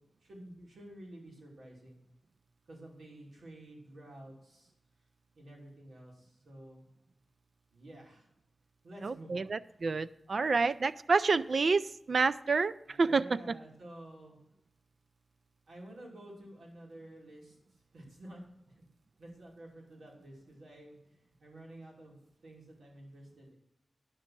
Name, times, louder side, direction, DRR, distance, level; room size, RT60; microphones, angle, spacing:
voice 1, 0.0-2.0 2.7-4.7 5.3-6.8 7.7-8.3 8.8-9.8 12.8-14.4 15.7-17.5 17.9-18.4 18.7-18.8 19.2-21.0 21.4-23.6, right 1 dB, 90° right, -2 dB, 3.1 m, -51 dB
voice 2, 9.0-13.4, right 4 dB, 55° right, 16 dB, 0.3 m, -29 dB
10.5 x 6.3 x 5.9 m, 0.86 s
wide cardioid pair, 125°, 0 cm